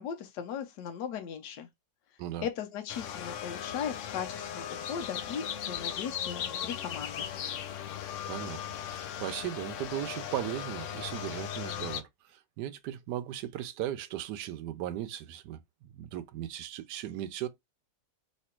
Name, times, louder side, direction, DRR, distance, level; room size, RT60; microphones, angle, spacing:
voice 1, 0.0-1.7 2.4-7.3, left 8 dB, 70° left, 1.4 m, -38 dB
sound 1, 2.9-12.0, left 9 dB, 90° left, 0.6 m, -38 dB
voice 2, 8.3-8.6 8.9-17.5, right 12 dB, 75° right, 1.1 m, -37 dB
3.3 x 3.0 x 4.4 m
omnidirectional pair, 1.9 m